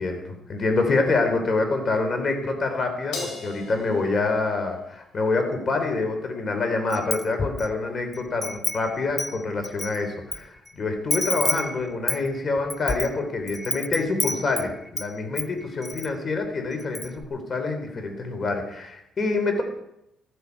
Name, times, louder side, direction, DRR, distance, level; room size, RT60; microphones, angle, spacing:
voice 1, 0.0-19.6, left 3 dB, 40° left, 5 dB, 3.6 m, -26 dB
Crash cymbal, 3.1-5.7, left 4 dB, 85° left, 3.7 m, -38 dB
Wind chime, 6.9-7.7 8.1-10.4 10.7-10.8 11.1-15.1 15.4-16.1 16.4-16.5 16.8-17.3, left 3 dB, 20° left, 0.6 m, -30 dB
14.5 x 13.5 x 4.8 m, 0.79 s
cardioid pair, 90°, 0 cm